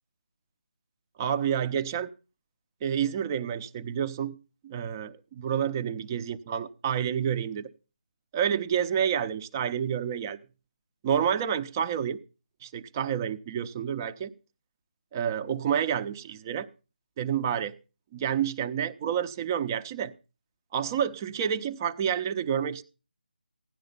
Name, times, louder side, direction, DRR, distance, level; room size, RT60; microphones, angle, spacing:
voice 1, 1.2-2.1 2.8-4.4 4.6-7.7 8.3-10.4 11.0-12.2 12.6-14.3 15.1-16.7 17.2-17.7 18.1-20.1 20.7-22.8, right 8 dB, 20° right, 0.7 m, -29 dB
16.5 x 10.5 x 5.5 m
figure-of-eight pair, 160°, 5 cm